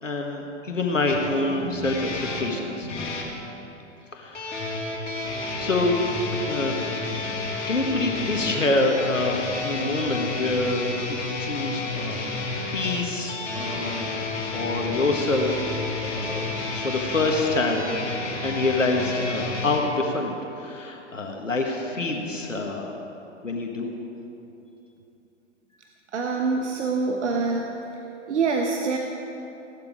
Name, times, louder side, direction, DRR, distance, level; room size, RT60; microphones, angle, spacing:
voice 1, 0.0-2.9 4.1-4.8 5.6-6.0 6.3-6.8 7.7-12.3 12.7-14.1 14.5-15.7 16.1-16.5 16.7-18.0 18.4-22.9 23.4-23.9, left 2 dB, 85° left, 2 dB, 1.5 m, -26 dB
sound 1, 1.1-3.3 4.3-19.8, left 3 dB, 65° left, 2.7 m, -31 dB
voice 2, 26.1-27.8 28.3-29.0, right 4 dB, 70° right, 2 dB, 1.2 m, -25 dB
16.5 x 12.0 x 5.0 m, 2.9 s
figure-of-eight pair, 105°, 37 cm